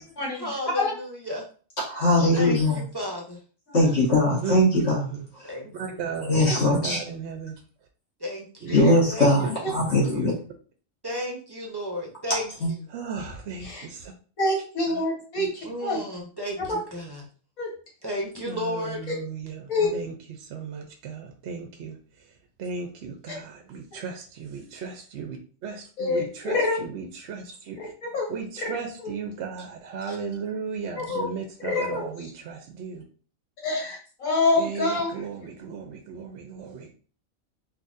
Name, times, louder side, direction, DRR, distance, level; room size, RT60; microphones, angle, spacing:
voice 1, 0.3-1.4 2.3-3.4 5.4-5.7 6.1-6.4 8.2-8.8 9.0-9.3 11.0-12.9 13.6-13.8 15.6-17.2 18.0-19.0 31.1-31.2, left 1 dB, 25° right, -1 dB, 0.6 m, -33 dB
voice 2, 1.8-2.8 3.7-5.0 6.3-7.0 8.7-10.3 12.6-12.7, left 1 dB, 55° left, -5 dB, 1.5 m, -21 dB
voice 3, 4.4-5.2 5.7-6.3 6.6-7.6 8.6-9.0 9.4-10.3 12.9-14.1 14.9-15.0 15.4-15.7 18.4-22.3 22.6-27.9 28.3-33.0 34.5-36.9, right 5 dB, 65° right, 3 dB, 0.8 m, -36 dB
voice 4, 14.4-16.0 16.7-16.8 17.6-17.7 19.7-19.9 26.0-26.8 27.8-28.3 28.6-28.7 31.0-31.3 31.6-32.1 33.6-35.1, left 2 dB, 80° left, -1 dB, 1.7 m, -26 dB
4.0 x 2.7 x 2.5 m, 0.40 s
omnidirectional pair, 1.4 m